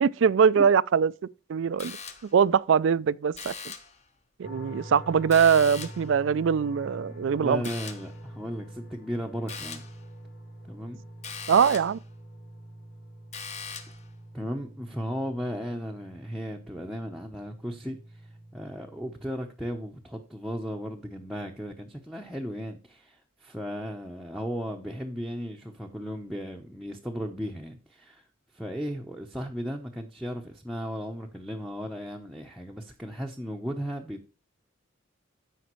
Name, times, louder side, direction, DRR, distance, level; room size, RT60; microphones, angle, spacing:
voice 1, 0.0-1.1 1.5-2.0 2.3-3.5 4.4-7.6 11.5-12.0, right 6 dB, 60° right, 0.3 m, -22 dB
sound 1, 1.8-2.5 3.3-4.0 5.3-6.1 7.6-8.2 9.5-10.0 11.2-12.0 13.3-14.1, left 5 dB, 30° left, 1.0 m, -40 dB
sound 2, 4.4-19.2, right 1 dB, 55° left, 2.5 m, -45 dB
voice 2, 7.4-9.8 10.7-11.0 14.3-28.3 28.5-34.3, equal, ahead, 0.7 m, -36 dB
14.0 x 5.1 x 3.1 m
head